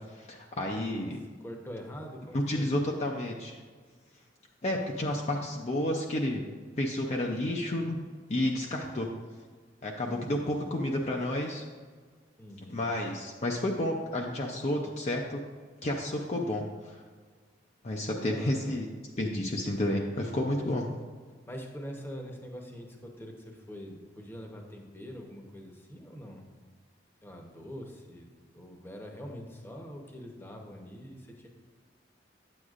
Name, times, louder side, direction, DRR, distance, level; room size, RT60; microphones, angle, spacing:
voice 1, 0.1-1.2 2.3-3.6 4.6-6.4 6.8-8.0 8.3-9.1 9.8-11.6 12.7-15.4 15.8-17.0 17.8-18.9 19.2-20.8, left 1 dB, 35° left, 0 dB, 0.5 m, -31 dB
voice 2, 0.7-1.1 1.4-2.7 10.0-10.5 12.4-12.8 18.3-18.8 20.6-20.9 21.5-26.4 27.2-28.3 28.5-31.5, equal, 10° left, 1 dB, 0.9 m, -44 dB
9.6 x 7.9 x 2.5 m, 1.5 s
head